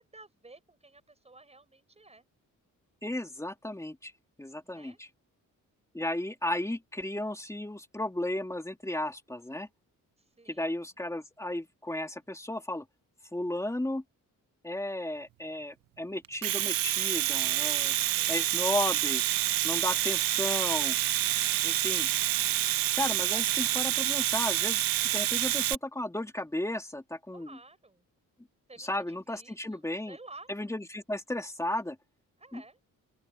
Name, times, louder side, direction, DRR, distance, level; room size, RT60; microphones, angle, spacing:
voice 1, 0.0-2.3 4.6-5.0 10.2-10.9 18.0-18.7 19.9-20.3 23.3-23.5 27.3-28.1 28.7-30.5 32.4-32.8, right 2 dB, 20° right, 6.4 m, -53 dB
voice 2, 3.0-4.1 4.4-5.1 5.9-9.7 10.5-12.8 13.3-14.0 14.6-17.9 18.3-19.2 19.6-21.0 21.6-22.1 22.9-27.5 28.8-30.2 30.5-32.0 32.5-32.6, left 1 dB, 10° left, 2.3 m, -34 dB
Domestic sounds home sounds, 16.2-25.7, right 14 dB, 85° right, 0.8 m, -28 dB
open air
cardioid pair, 105°, 33 cm